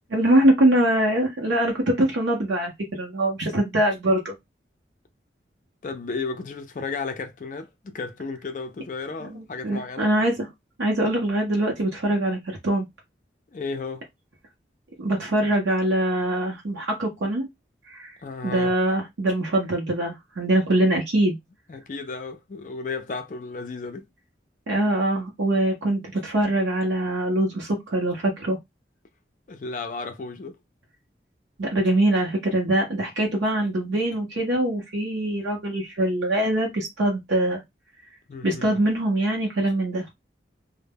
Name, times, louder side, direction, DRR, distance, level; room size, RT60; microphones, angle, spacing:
voice 1, 0.1-4.3 9.3-10.5 10.8-12.9 15.0-17.5 17.9-18.2 18.4-21.4 24.7-28.6 31.6-37.6 38.4-40.0, right 1 dB, 85° right, 0.6 m, -23 dB
voice 2, 5.8-10.1 13.5-14.0 18.2-18.7 21.7-24.1 29.5-30.6 38.3-38.8, left 4 dB, 45° left, 0.4 m, -33 dB
2.1 x 2.0 x 3.3 m
head